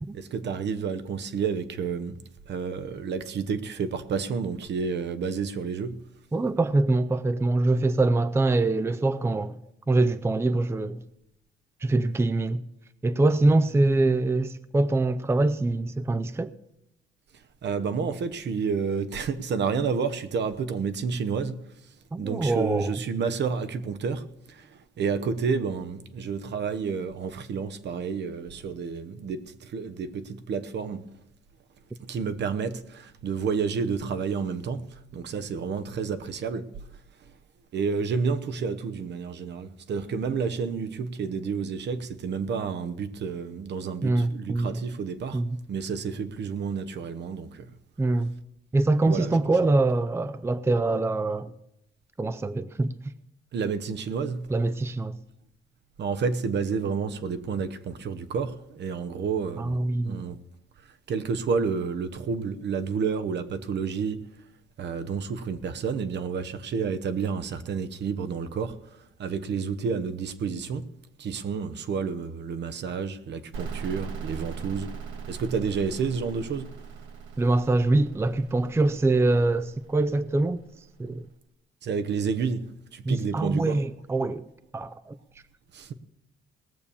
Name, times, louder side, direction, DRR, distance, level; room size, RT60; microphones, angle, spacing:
voice 1, 0.1-2.2 2.5-5.9 17.6-21.5 22.2-24.2 25.0-29.4 29.7-31.0 32.1-32.8 33.2-34.8 35.1-36.6 37.7-45.4 45.7-47.5 49.0-49.3 53.5-54.4 56.0-59.8 60.1-60.3 61.1-64.2 64.8-68.7 69.2-70.8 71.2-74.9 75.3-76.7 81.8-82.6 82.9-83.7 85.8-85.9, right 5 dB, 60° right, 1.0 m, -30 dB
voice 2, 6.3-9.6 9.9-11.0 11.8-12.6 13.0-16.5 22.1-23.0 44.0-44.8 45.3-45.6 48.0-48.3 48.7-51.5 52.2-52.9 54.5-55.2 59.6-60.2 77.4-80.6 81.0-81.3 83.0-84.4 84.7-85.2, right 2 dB, 10° right, 0.5 m, -24 dB
sound 1, 73.5-81.1, right 6 dB, 90° right, 1.6 m, -40 dB
18.5 x 6.9 x 7.1 m
cardioid pair, 90°, 20 cm